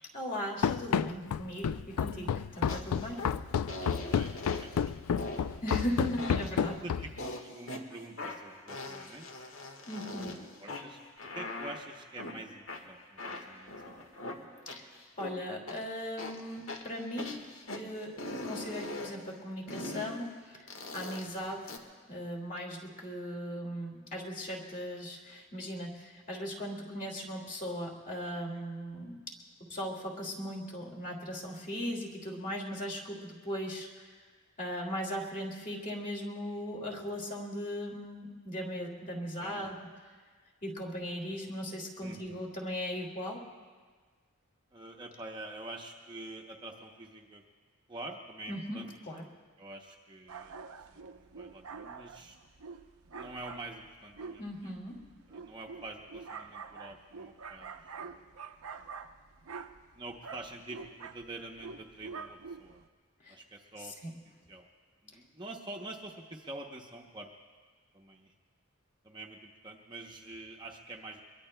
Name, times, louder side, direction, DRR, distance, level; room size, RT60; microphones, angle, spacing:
voice 1, 0.1-3.2 5.6-6.8 9.9-10.5 14.7-14.9 15.2-17.4 17.7-18.1 18.4-21.7 22.1-29.2 29.7-34.1 34.6-39.8 40.6-43.4 48.5-48.8 49.1-49.2 54.4-55.0 63.2-63.4 63.8-64.1, equal, 35° left, -2 dB, 2.3 m, -38 dB
Run, 0.6-7.2, left 7 dB, 90° left, 0.4 m, -30 dB
sound 1, 2.7-3.3 3.7-4.8 5.2-5.4 5.7-6.6 7.2-7.8 8.2-10.4 10.7-12.3 12.7-15.3 15.7-15.8 16.2-17.8 18.2-19.1 19.7-20.2 20.7-21.8, left 2 dB, 70° left, 1.5 m, -41 dB
voice 2, 3.7-5.5 6.8-9.5 10.1-10.2 10.6-11.0 11.3-14.1 28.5-28.6 39.4-39.7 42.0-42.4 44.7-47.4 47.9-48.9 49.6-50.6 50.9-52.4 53.1-54.7 55.3-58.3 59.9-62.8 63.3-64.1 64.5-64.7 65.0-67.3 67.9-68.3 69.0-71.2, right 2 dB, 20° right, 0 dB, 0.7 m, -46 dB
sound 2, 50.3-62.9, right 5 dB, 85° right, 0.7 m, -46 dB
23.5 x 22.5 x 2.2 m, 1.5 s
head